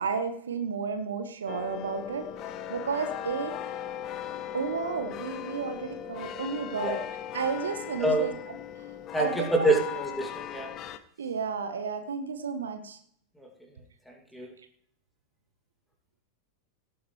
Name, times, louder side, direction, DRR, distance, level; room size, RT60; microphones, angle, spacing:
voice 1, 0.0-2.3 2.7-3.6 4.5-7.0 7.3-8.9 9.2-9.7 11.2-13.0, right 5 dB, 70° right, 9 dB, 1.2 m, -32 dB
sound 1, 1.5-11.0, left 10 dB, 35° left, 0.9 m, -38 dB
voice 2, 9.1-10.7 14.3-14.5, right 1 dB, 5° left, 2 dB, 2.5 m, -26 dB
17.5 x 8.6 x 3.3 m, 0.65 s
figure-of-eight pair, 90°, 0 cm